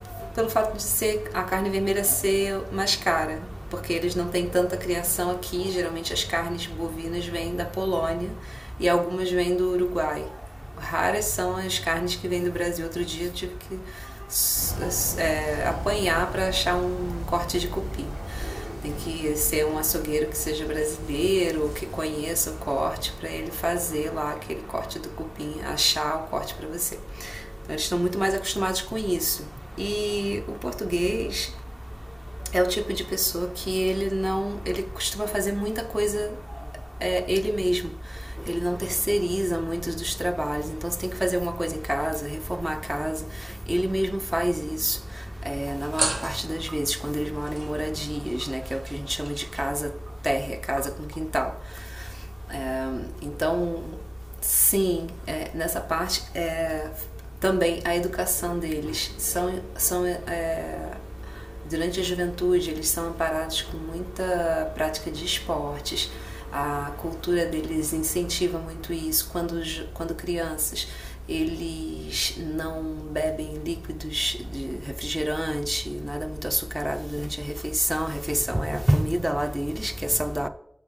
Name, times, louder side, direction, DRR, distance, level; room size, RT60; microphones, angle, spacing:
voice 1, 0.4-0.7 1.0-3.4 3.9-8.3 8.8-10.2 10.8-13.3 13.7-13.8 14.3-17.7 18.8-21.7 22.0-22.4 22.7-23.0 23.2-24.4 24.7-24.8 25.4-26.4 26.7-26.8 27.7-29.3 29.8-31.5 32.5-36.3 37.0-37.8 38.5-38.8 39.1-42.2 42.5-43.2 43.7-45.0 45.5-49.9 50.3-50.8 51.2-51.5 52.5-53.9 54.7-56.9 57.4-59.1 59.4-59.6 59.9-60.9 61.7-66.1 66.5-70.8 71.3-73.8 74.1-77.3 77.6-80.5, equal, 10° right, 0.6 m, -27 dB
sound 1, 14.5-24.2, equal, 30° right, 2.7 m, -36 dB
sound 2, 45.3-47.0 47.3-50.5 50.7-51.2, right 2 dB, 55° right, 0.8 m, -35 dB
7.4 x 4.4 x 6.3 m
wide cardioid pair, 80°, 0 cm